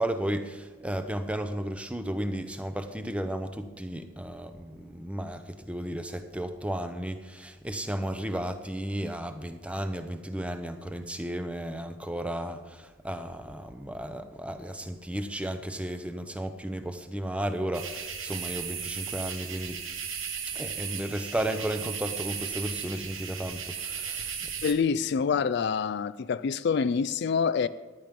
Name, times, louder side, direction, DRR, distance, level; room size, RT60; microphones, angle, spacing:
voice 1, 0.0-19.8 20.5-24.5, right 1 dB, 5° right, 0.7 m, -34 dB
sound 1, 17.7-24.7, right 7 dB, 75° right, 1.5 m, -36 dB
voice 2, 24.6-27.7, left 6 dB, 55° left, 0.3 m, -26 dB
15.0 x 10.5 x 5.2 m
head